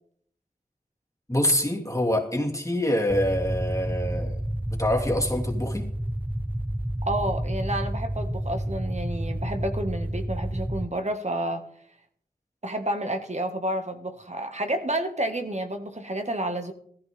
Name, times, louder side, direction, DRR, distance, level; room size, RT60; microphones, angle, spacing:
voice 1, 1.3-4.4 4.7-5.9, left 1 dB, 20° left, 0 dB, 2.9 m, -25 dB
sound 1, 3.1-10.8, right 1 dB, 10° right, 0.7 m, -30 dB
voice 2, 7.1-11.6 12.6-16.7, right 1 dB, 50° right, 5 dB, 1.9 m, -30 dB
15.0 x 14.5 x 3.7 m, 0.64 s
wide cardioid pair, 45°, 15 cm